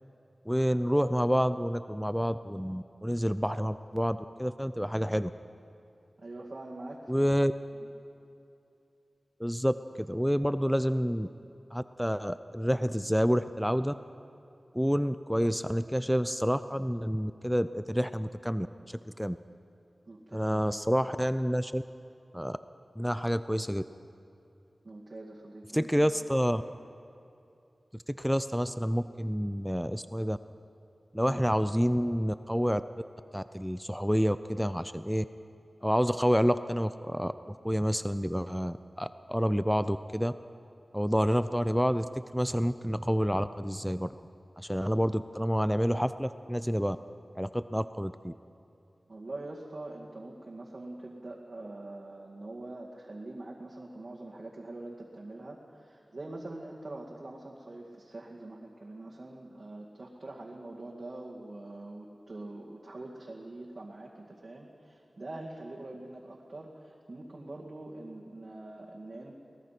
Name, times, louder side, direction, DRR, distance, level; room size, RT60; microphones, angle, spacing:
voice 1, 0.5-5.3 7.1-7.5 9.4-11.3 11.7-13.9 14.7-19.4 20.3-21.8 22.3-22.6 23.0-23.8 25.7-26.6 27.9-30.4 31.1-32.8 33.3-35.2 35.8-40.3 40.9-44.1 44.6-47.0 47.4-48.3, equal, ahead, 12 dB, 0.5 m, -28 dB
voice 2, 6.2-7.4 7.8-7.9 20.1-20.8 24.8-26.2 31.3-31.4 49.1-69.3, right 2 dB, 55° right, -4 dB, 2.2 m, -44 dB
23.0 x 19.0 x 5.9 m, 2.6 s
wide cardioid pair, 70°, 0 cm